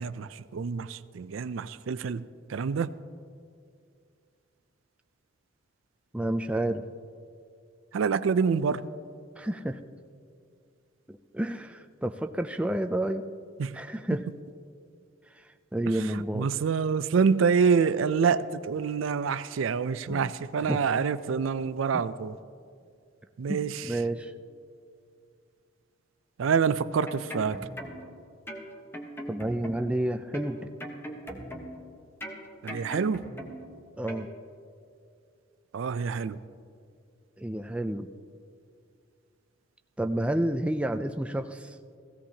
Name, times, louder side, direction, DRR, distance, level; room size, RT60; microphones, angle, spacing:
voice 1, 0.0-2.9 7.9-8.8 13.6-13.8 15.9-22.4 23.4-24.0 26.4-27.7 32.6-33.3 35.7-36.4, right 6 dB, 85° right, 14 dB, 0.4 m, -27 dB
voice 2, 6.1-6.8 9.4-9.8 11.1-13.2 13.7-14.2 15.3-15.4 15.7-16.5 20.1-20.3 20.7-20.8 21.9-22.0 23.5-24.3 29.3-30.7 34.0-34.3 37.4-38.1 40.0-41.8, right 1 dB, 5° right, 6 dB, 0.3 m, -30 dB
sound 1, 26.8-28.1 28.5-30.0 30.3-31.9 32.2-33.7 34.1-34.3, equal, 10° left, 1.1 m, -40 dB
16.5 x 16.0 x 2.8 m, 2.3 s
head